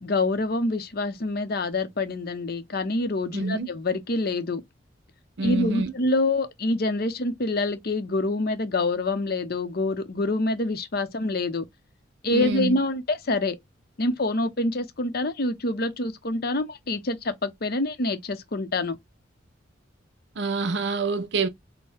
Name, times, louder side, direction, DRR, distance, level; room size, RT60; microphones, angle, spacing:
voice 1, 0.0-4.6 5.4-11.6 12.2-13.6 14.0-19.0, left 2 dB, 50° left, 0.7 m, -26 dB
voice 2, 3.3-3.7 5.4-5.9 12.3-12.8 20.4-21.5, right 3 dB, 60° right, 0.6 m, -26 dB
4.4 x 2.1 x 3.4 m
head